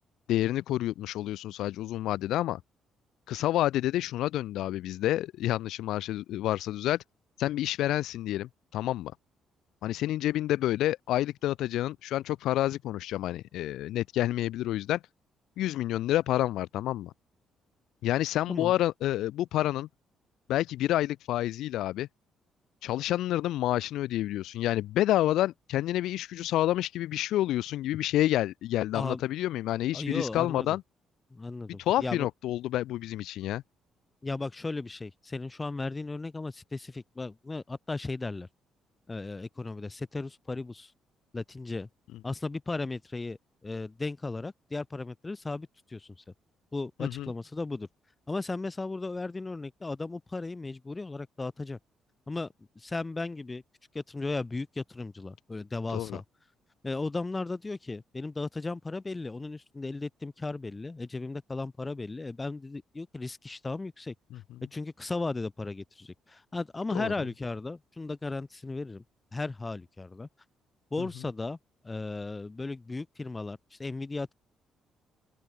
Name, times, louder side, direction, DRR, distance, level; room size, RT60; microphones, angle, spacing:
voice 1, 0.3-2.6 3.3-7.0 7.4-9.1 9.8-15.0 15.6-17.1 18.0-19.9 20.5-22.1 22.8-30.8 31.8-33.6 47.0-47.3 55.9-56.2 66.9-67.1, left 14 dB, 80° left, 2.1 m, -29 dB
voice 2, 29.9-30.8 31.3-32.3 34.2-38.5 39.1-40.9 41.3-41.9 42.2-46.1 46.7-47.9 48.3-51.8 52.3-53.6 53.9-56.2 56.8-64.1 64.7-69.0 69.3-70.3 70.9-71.6 71.8-74.3, left 3 dB, 15° left, 6.8 m, -36 dB
open air
cardioid pair, 180°, 0 cm